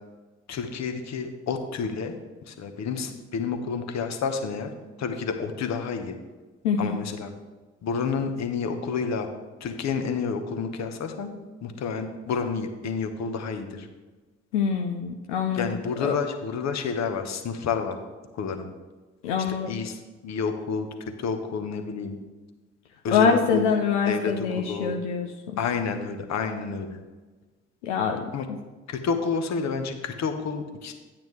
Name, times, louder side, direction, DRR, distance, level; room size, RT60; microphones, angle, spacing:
voice 1, 0.5-2.1 2.5-4.7 5.0-6.2 6.8-7.3 7.8-9.3 9.6-13.9 15.5-18.0 18.3-18.7 19.7-20.9 21.2-22.1 23.0-23.7 24.0-25.0 25.6-27.0 28.3-28.5 28.9-30.9, left 5 dB, 50° left, 7 dB, 1.1 m, -29 dB
voice 2, 6.6-7.0 14.5-15.7 16.0-16.1 19.2-19.7 23.1-25.3 27.8-28.3, left 6 dB, 80° left, 2 dB, 0.6 m, -24 dB
9.4 x 8.8 x 3.3 m, 1.3 s
hypercardioid pair, 45°, 34 cm